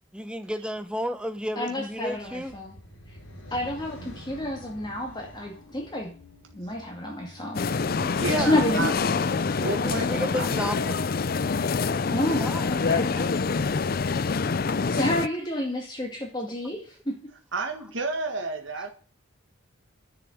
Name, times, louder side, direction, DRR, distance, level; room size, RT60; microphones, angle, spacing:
voice 1, 0.1-2.5 8.0-8.6 9.6-11.1 12.4-13.3, equal, 5° right, 0.9 m, -33 dB
voice 2, 1.6-2.7 3.1-3.2 3.5-6.1 6.5-7.7 8.4-9.2 12.1-13.1 14.9-17.2, left 1 dB, 20° left, 2.3 m, -30 dB
sound 1, 1.9-8.4, equal, 75° left, 5.8 m, -47 dB
sound 2, 7.5-15.3, left 4 dB, 45° left, 0.5 m, -26 dB
voice 3, 8.1-8.9 9.6-10.1 10.3-10.7 17.5-18.9, right 3 dB, 65° right, 1.7 m, -31 dB
11.0 x 6.6 x 7.9 m
head